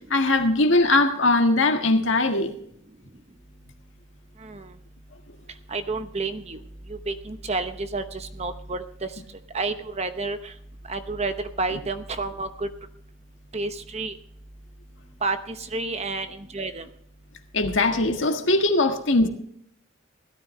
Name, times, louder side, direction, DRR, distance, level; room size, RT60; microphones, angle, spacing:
voice 1, 0.1-2.5 17.5-19.3, left 2 dB, 70° left, 1.6 m, -20 dB
voice 2, 5.7-6.6 6.9-9.1 9.5-10.5 10.9-12.7 13.5-14.1 15.2-16.8, right 3 dB, 30° right, 0.9 m, -30 dB
17.0 x 13.0 x 3.2 m
head